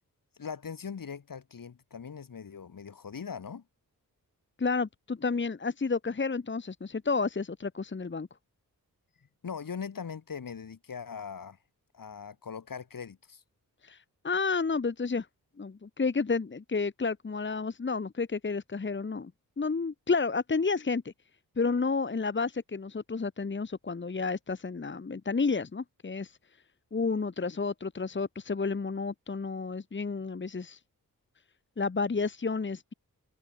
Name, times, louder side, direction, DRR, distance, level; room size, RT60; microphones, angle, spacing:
voice 1, 0.4-3.6 9.4-11.6 11.9-13.4, left 6 dB, 65° left, 3.8 m, -40 dB
voice 2, 4.6-8.3 13.8-14.0 14.2-15.3 15.6-19.3 19.6-21.1 21.6-26.3 26.9-30.8 31.8-32.9, left 4 dB, 30° left, 1.4 m, -31 dB
open air
wide cardioid pair, 85°, 36 cm